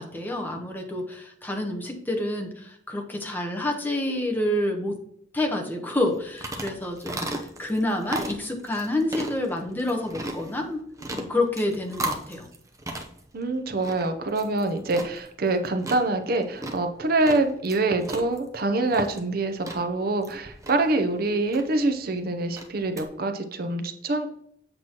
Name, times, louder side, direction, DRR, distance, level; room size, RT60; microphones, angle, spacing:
voice 1, 0.0-5.0 5.3-10.9 11.1-12.5, left 1 dB, 10° left, 2 dB, 0.9 m, -28 dB
sound 1, 6.0-23.1, right 1 dB, 20° right, 0.7 m, -37 dB
voice 2, 13.3-24.3, right 2 dB, 55° right, 7 dB, 0.7 m, -25 dB
7.8 x 6.0 x 2.9 m, 0.69 s
head